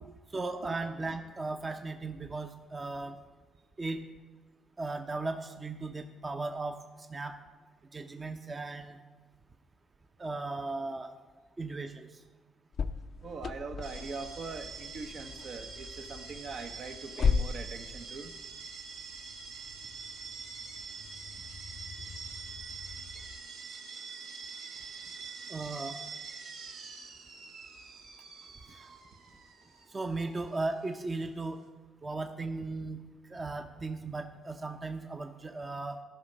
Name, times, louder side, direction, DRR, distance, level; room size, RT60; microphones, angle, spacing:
voice 1, 0.3-3.2 3.8-4.0 4.8-7.4 7.9-9.0 10.2-11.1 11.6-12.2 25.5-26.0 28.7-28.9 29.9-31.6 32.0-36.0, right 3 dB, 30° right, 6 dB, 0.7 m, -37 dB
sound 1, 12.7-23.4, left 5 dB, 55° left, 0.5 m, -38 dB
voice 2, 13.2-18.3, right 4 dB, 60° right, 6 dB, 0.9 m, -42 dB
sound 2, 13.8-31.7, right 5 dB, 85° right, 1.2 m, -45 dB
13.5 x 5.6 x 5.3 m, 1.3 s
cardioid pair, 90°, 0 cm